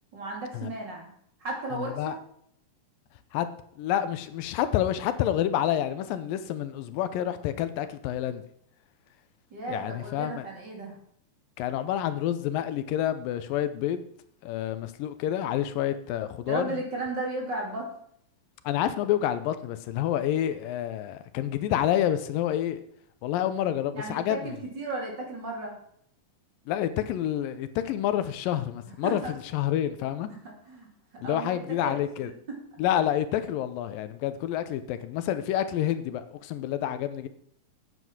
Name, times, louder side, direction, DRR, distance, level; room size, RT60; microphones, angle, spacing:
voice 1, 0.1-1.1 1.4-2.2 9.5-11.0 16.5-17.9 24.0-25.7 29.0-29.3 30.3-30.4 30.6-30.9 31.2-32.0 32.5-32.6, right 2 dB, 35° right, 2.9 m, -34 dB
voice 2, 1.7-2.1 3.3-3.5 3.8-8.4 9.7-10.5 11.6-14.0 14.4-16.8 18.7-22.8 23.2-24.6 26.7-30.3 31.2-32.3 32.8-37.3, left 11 dB, 85° left, 2.5 m, -28 dB
9.5 x 8.1 x 6.1 m
omnidirectional pair, 4.0 m